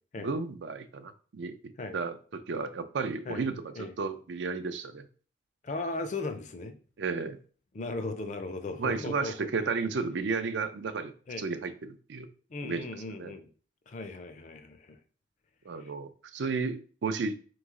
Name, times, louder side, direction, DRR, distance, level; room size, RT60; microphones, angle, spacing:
voice 1, 0.2-1.6 1.9-5.1 7.0-7.4 8.8-12.3 12.6-12.8 13.2-13.3 15.7-17.3, right 4 dB, 80° right, 10 dB, 0.5 m, -33 dB
voice 2, 5.6-6.8 7.7-9.5 11.3-11.4 12.5-13.5 13.9-15.0 15.8-15.9, left 2 dB, 40° left, 8 dB, 0.5 m, -37 dB
3.8 x 3.1 x 3.6 m, 0.40 s
head